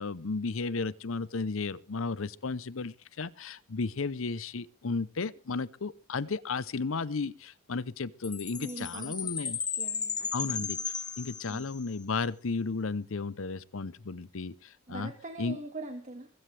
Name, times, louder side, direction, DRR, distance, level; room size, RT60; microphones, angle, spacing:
voice 1, 0.0-9.6 10.3-10.8 11.2-15.1 15.4-15.6, left 4 dB, 70° left, 0.7 m, -34 dB
Chime, 8.2-11.9, left 6 dB, 20° left, 1.3 m, -35 dB
voice 2, 8.6-9.2 9.8-11.1 11.5-11.7 14.9-16.3, right 2 dB, 35° right, 1.8 m, -43 dB
22.5 x 15.5 x 3.4 m
head